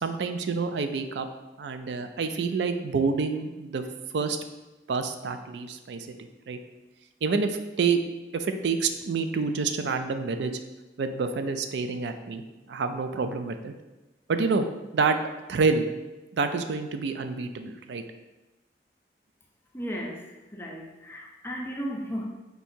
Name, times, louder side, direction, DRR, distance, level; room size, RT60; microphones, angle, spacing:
voice 1, 0.0-1.3 1.6-3.9 4.1-4.4 4.9-6.1 6.5-6.6 7.2-8.0 8.3-10.5 11.0-13.7 14.3-14.7 14.9-15.2 15.5-15.9 16.3-18.0, right 4 dB, 85° right, 8 dB, 0.4 m, -27 dB
voice 2, 19.7-20.2 20.5-22.2, equal, 15° left, -1 dB, 0.5 m, -34 dB
4.5 x 2.7 x 4.3 m, 1.1 s
head